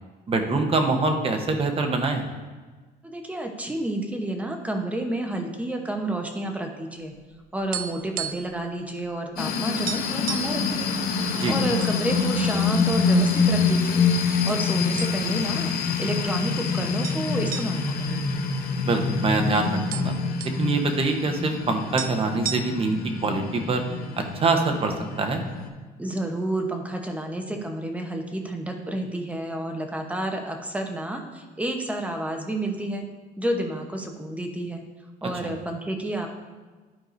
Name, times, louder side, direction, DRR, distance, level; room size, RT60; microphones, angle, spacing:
voice 1, 0.3-2.2 11.3-11.5 18.8-20.1 20.6-23.8 24.2-25.4, right 3 dB, 35° right, 4 dB, 1.0 m, -24 dB
voice 2, 3.0-7.1 7.5-10.9 11.5-14.0 14.4-15.7 16.0-18.2 26.0-33.1 33.4-34.8 35.2-36.3, right 1 dB, 10° right, 3 dB, 0.9 m, -30 dB
sound 1, 7.2-8.6 8.9-9.1 9.4-9.5 9.9-10.6 11.3-12.0 12.3-12.5 13.2-13.8 14.5-14.6 15.0-15.5 15.9-16.0 17.0-19.1 19.4-19.5 19.7-20.6 21.6-21.7 22.0-23.0, right 9 dB, 60° right, 0.4 m, -34 dB
sound 2, 9.4-25.7, left 4 dB, 60° left, 0.9 m, -26 dB
12.0 x 4.7 x 2.6 m, 1.3 s
cardioid pair, 110°, 17 cm